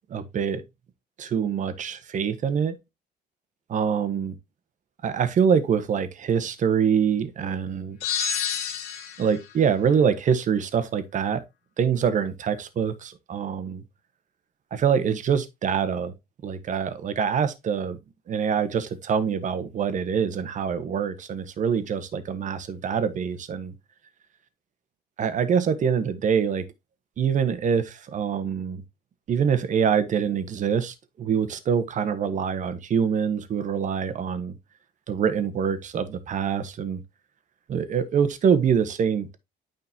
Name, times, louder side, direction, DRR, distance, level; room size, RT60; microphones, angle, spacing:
voice 1, 0.1-0.6 1.2-2.8 3.7-4.3 5.0-8.0 9.2-11.4 11.8-13.8 14.7-16.1 16.4-18.0 18.3-23.7 25.2-26.7 27.2-28.8 29.3-34.5 35.1-37.0 37.7-39.4, right 7 dB, 50° right, 1.3 m, -25 dB
sound 1, 8.0-9.4, left 8 dB, 85° left, 1.8 m, -28 dB
9.5 x 5.2 x 2.8 m
cardioid pair, 110°, 17 cm